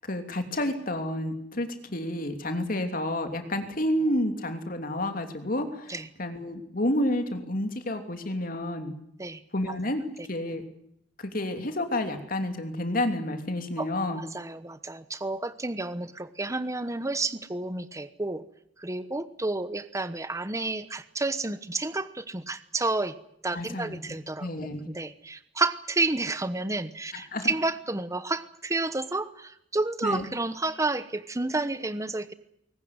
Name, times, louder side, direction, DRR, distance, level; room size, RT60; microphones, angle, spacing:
voice 1, 0.1-8.9 9.5-10.6 11.2-14.2 23.5-24.9 27.3-27.5 30.0-30.2, left 1 dB, 50° left, 6 dB, 3.2 m, -30 dB
voice 2, 13.8-18.4 18.8-23.1 23.4-24.5 24.9-32.3, right 2 dB, 15° right, 13 dB, 1.0 m, -30 dB
21.5 x 19.0 x 9.7 m, 0.74 s
head